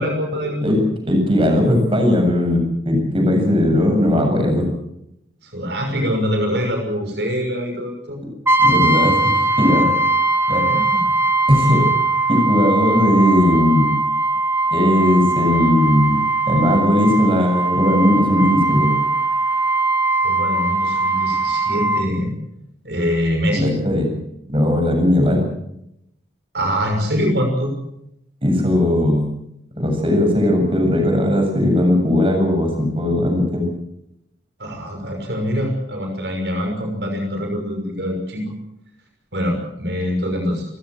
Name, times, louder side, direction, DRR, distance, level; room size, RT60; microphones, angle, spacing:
voice 1, 0.0-0.8 5.4-8.2 10.7-11.1 20.2-22.3 22.8-23.7 26.5-27.7 34.6-38.5 39.3-40.7, equal, 70° right, 3 dB, 5.9 m, -24 dB
voice 2, 0.6-4.7 8.6-9.9 10.5-10.7 11.5-11.9 12.3-13.9 14.7-16.2 16.5-18.9 23.5-24.1 24.5-25.5 28.4-29.3 29.8-33.6, left 1 dB, 30° right, 2 dB, 7.6 m, -17 dB
Brass instrument, 8.5-22.1, right 3 dB, 15° right, 2.0 m, -20 dB
29.0 x 16.0 x 7.9 m, 0.81 s
head